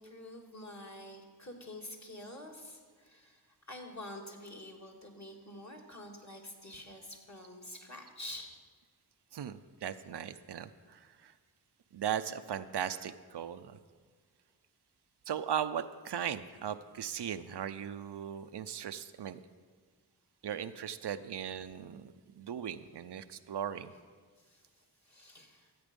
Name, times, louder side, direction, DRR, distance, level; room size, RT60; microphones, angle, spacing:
voice 1, 0.0-3.4 3.7-8.5 23.8-23.9 24.4-24.7 25.0-25.7, left 1 dB, 40° left, 0 dB, 2.2 m, -47 dB
voice 2, 9.3-11.3 11.9-13.8 15.3-19.4 20.4-23.9, right 9 dB, 75° right, 11 dB, 0.6 m, -38 dB
13.5 x 8.0 x 5.3 m, 1.5 s
cardioid pair, 40°, 41 cm